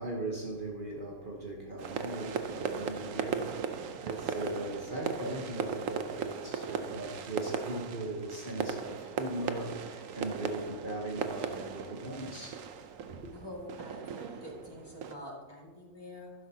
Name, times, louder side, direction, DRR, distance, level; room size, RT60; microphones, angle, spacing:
voice 1, 0.0-3.7 4.0-12.6, right 1 dB, 45° right, 1.2 m, -39 dB
sound 1, 1.8-15.2, right 6 dB, 85° right, 1.1 m, -37 dB
voice 2, 13.3-16.3, equal, 20° left, 2.1 m, -46 dB
12.5 x 11.0 x 2.8 m
omnidirectional pair, 1.3 m